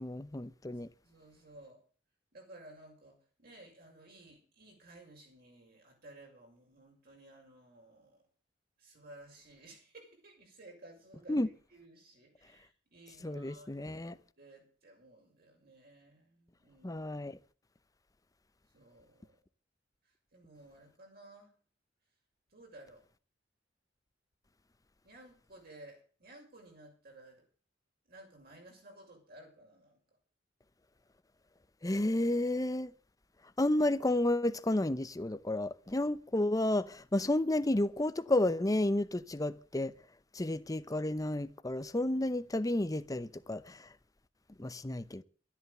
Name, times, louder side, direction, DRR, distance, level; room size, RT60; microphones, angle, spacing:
voice 1, 0.0-0.9 11.3-11.5 13.2-14.1 16.8-17.3 31.8-32.9 33.6-39.9 40.3-43.9 44.6-45.2, left 1 dB, 20° left, 0.7 m, -31 dB
voice 2, 0.7-1.8 2.3-8.3 8.8-17.3 18.7-19.4 20.0-21.6 22.5-23.0 25.0-27.5 28.1-30.0, right 1 dB, 55° right, 6.5 m, -56 dB
13.0 x 11.0 x 6.8 m
head